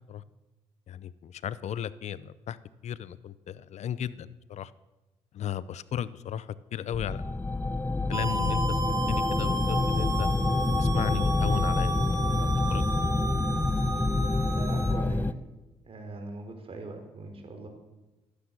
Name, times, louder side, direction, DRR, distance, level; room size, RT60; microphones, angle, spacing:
voice 1, 0.9-2.6 2.8-4.7 5.3-7.4 8.1-10.3 10.8-13.1, left 10 dB, 70° left, 17 dB, 0.7 m, -35 dB
sound 1, 6.9-15.3, left 2 dB, 15° left, 0.7 m, -27 dB
sound 2, 8.1-14.9, right 3 dB, 30° right, 1.8 m, -34 dB
voice 2, 14.5-15.4 15.8-17.7, right 2 dB, 50° right, 5 dB, 4.3 m, -41 dB
18.0 x 10.0 x 7.6 m, 1.1 s
cardioid pair, 70°, 12 cm